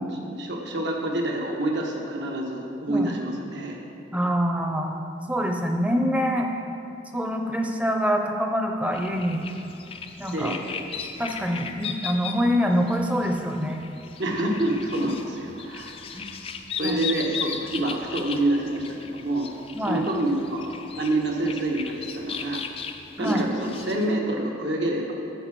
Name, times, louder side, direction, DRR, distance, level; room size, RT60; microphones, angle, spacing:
voice 1, 0.0-3.8 10.3-10.8 14.2-16.3 16.7-19.5 19.9-22.6 23.2-25.1, right 1 dB, 65° right, -1 dB, 1.5 m, -27 dB
voice 2, 4.1-5.0 5.3-6.5 7.1-9.4 10.2-10.5 11.2-13.8 16.1-16.2 16.8-17.0 19.7-20.0 23.2-23.4, equal, 5° right, 2 dB, 0.7 m, -25 dB
sound 1, 8.9-24.1, left 6 dB, 30° left, 0.4 m, -37 dB
14.5 x 4.9 x 6.1 m, 2.7 s
head